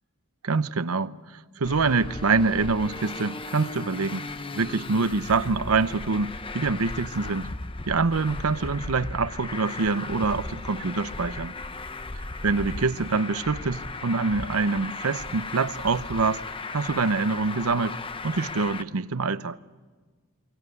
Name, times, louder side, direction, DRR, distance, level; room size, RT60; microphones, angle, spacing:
voice 1, 0.4-1.1 1.6-4.3 4.5-7.5 7.9-11.5 12.4-16.4 16.7-18.0 18.2-19.6, right 4 dB, 85° right, 0.8 m, -25 dB
Traffic noise roadway noise, 1.6-18.8, left 3 dB, 25° left, 0.8 m, -36 dB
22.5 x 19.0 x 9.6 m
head